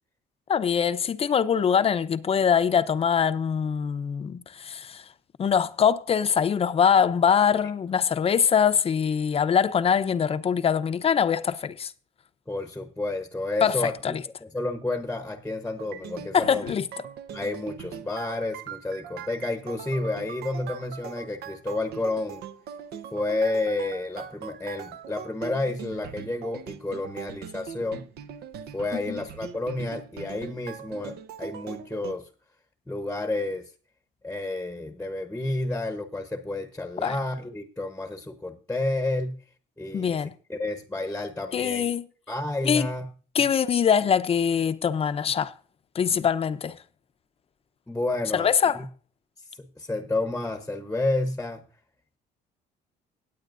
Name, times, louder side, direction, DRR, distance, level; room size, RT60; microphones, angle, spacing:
voice 1, 0.5-5.0 5.4-11.9 13.6-14.2 16.3-16.9 28.9-29.2 37.0-37.2 39.9-40.3 41.5-42.1 42.6-42.9 43.3-45.5 45.9-46.8 48.3-48.8, left 7 dB, 35° left, 0.7 m, -23 dB
voice 2, 12.5-16.7 17.3-22.4 23.1-28.0 28.7-32.3 32.9-33.7 34.2-39.4 39.8-40.2 40.5-41.9 42.3-43.1 47.9-48.9 49.6-51.6, left 2 dB, 10° left, 0.9 m, -30 dB
sound 1, 15.8-32.1, right 8 dB, 70° right, 0.9 m, -41 dB
18.5 x 8.4 x 2.6 m
cardioid pair, 110°, 17 cm